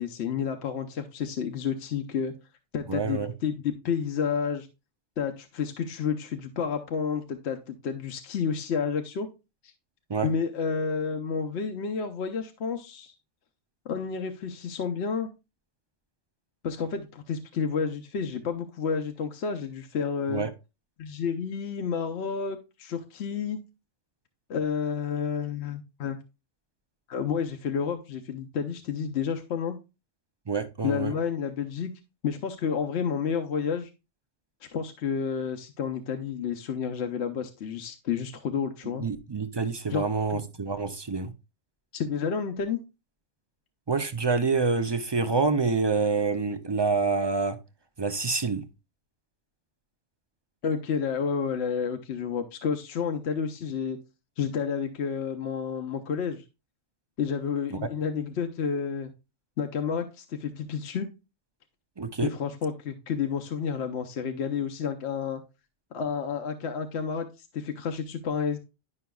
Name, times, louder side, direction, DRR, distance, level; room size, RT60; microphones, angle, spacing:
voice 1, 0.0-2.3 2.7-4.7 5.2-9.3 9.6-9.7 10.2-13.1 13.9-15.3 16.6-20.4 21.0-23.6 24.5-26.2 27.1-29.8 30.8-31.9 32.2-33.9 34.7-39.0 39.9-40.0 40.3-40.4 41.9-42.8 50.6-54.0 54.4-56.4 57.2-59.1 59.6-61.1 62.2-65.4 65.9-68.6, left 6 dB, 70° left, 0.9 m, -30 dB
voice 2, 2.9-3.3 10.1-10.3 20.3-20.5 30.5-31.1 39.0-41.3 43.9-47.6 48.0-48.6 57.7-57.8 62.0-62.3, right 4 dB, 40° right, 0.3 m, -27 dB
11.0 x 5.7 x 2.3 m
omnidirectional pair, 1.2 m